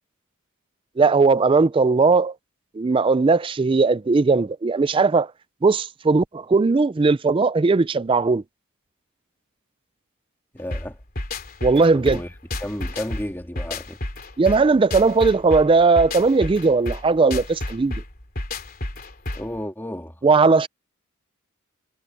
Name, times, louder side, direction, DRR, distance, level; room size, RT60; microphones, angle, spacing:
voice 1, 1.0-2.3 2.8-5.3 5.6-8.4 11.6-12.2 14.4-18.0 20.2-20.7, right 4 dB, 25° right, 0.3 m, -18 dB
voice 2, 10.5-11.0 11.9-12.3 12.6-14.0 19.3-20.1, left 1 dB, 10° left, 3.0 m, -32 dB
sound 1, 10.7-19.6, left 1 dB, 45° left, 3.2 m, -31 dB
head